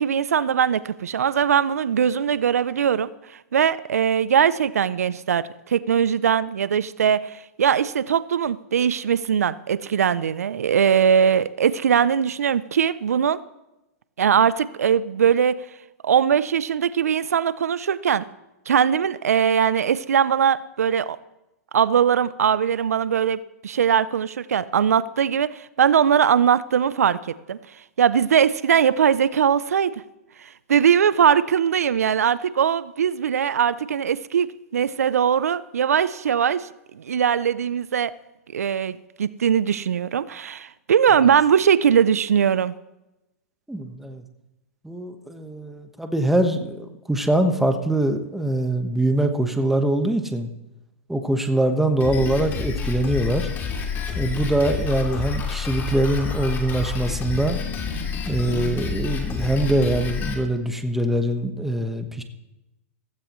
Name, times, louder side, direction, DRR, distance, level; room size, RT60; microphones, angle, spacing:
voice 1, 0.0-3.1 3.5-13.4 14.2-15.6 16.0-18.2 18.7-21.2 21.7-27.2 27.5-27.6 28.0-30.0 30.7-36.7 36.9-38.1 38.5-42.7, right 8 dB, 85° right, 17 dB, 0.5 m, -20 dB
voice 2, 43.7-44.2 44.8-50.5 51.1-53.5 54.1-57.6 58.3-62.2, right 1 dB, 5° right, 6 dB, 1.3 m, -23 dB
Drum kit, 52.0-60.3, left 6 dB, 25° left, 2.8 m, -28 dB
16.0 x 15.5 x 3.1 m, 0.95 s
hypercardioid pair, 125°, 8 cm